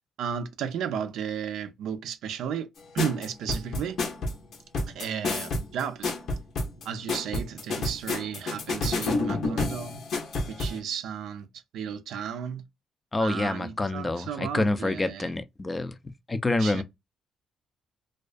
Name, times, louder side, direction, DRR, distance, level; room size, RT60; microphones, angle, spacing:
voice 1, 0.2-4.0 4.9-6.2 6.8-10.0 10.5-12.6 13.2-15.3 16.6-16.8, right 8 dB, 80° right, 0.4 m, -34 dB
sound 1, 3.0-10.8, left 2 dB, 65° left, 0.7 m, -29 dB
voice 2, 13.1-15.9 16.3-16.8, left 2 dB, 20° left, 0.3 m, -27 dB
2.3 x 2.3 x 2.4 m
cardioid pair, 90°, 0 cm